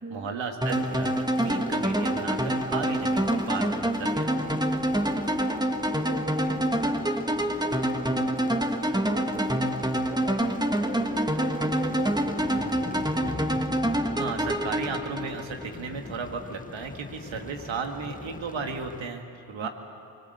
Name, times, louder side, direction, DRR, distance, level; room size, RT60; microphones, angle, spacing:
voice 1, 0.1-4.3 14.2-19.7, right 5 dB, 85° right, 4 dB, 2.0 m, -35 dB
sound 1, 0.6-19.1, left 3 dB, 20° left, 1.0 m, -41 dB
sound 2, 0.6-15.7, right 1 dB, 10° right, 1.5 m, -27 dB
voice 2, 5.1-6.9 7.6-12.8 19.6-19.7, right 2 dB, 25° right, 5 dB, 1.9 m, -39 dB
24.5 x 20.0 x 8.1 m, 2.8 s
supercardioid pair, 45°, 45 cm